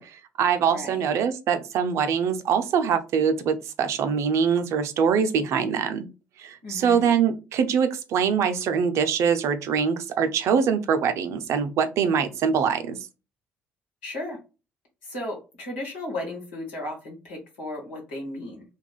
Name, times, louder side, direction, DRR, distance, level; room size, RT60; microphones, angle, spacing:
voice 1, 0.0-6.1 6.4-13.0, right 7 dB, 60° right, 9 dB, 0.5 m, -23 dB
voice 2, 0.7-1.0 6.6-7.1 14.0-14.4 15.0-18.6, left 1 dB, 85° left, -1 dB, 1.6 m, -35 dB
2.9 x 2.4 x 3.8 m, 0.30 s
hypercardioid pair, 55°, 5 cm